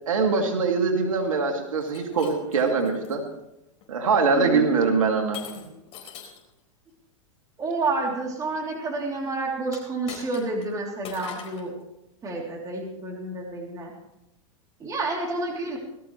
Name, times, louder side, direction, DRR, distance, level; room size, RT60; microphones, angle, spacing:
voice 1, 0.1-3.2 3.9-5.4, right 4 dB, 90° right, 2 dB, 2.4 m, -23 dB
Shatter, 1.8-3.2 3.8-4.1 5.3-6.5 9.6-10.7 11.0-11.7, left 7 dB, 35° left, 4.6 m, -42 dB
voice 2, 4.3-4.7 7.6-11.7 12.2-13.9 14.8-15.8, right 3 dB, 20° right, -1 dB, 3.2 m, -29 dB
19.5 x 14.0 x 3.2 m, 0.89 s
hypercardioid pair, 125°, 17 cm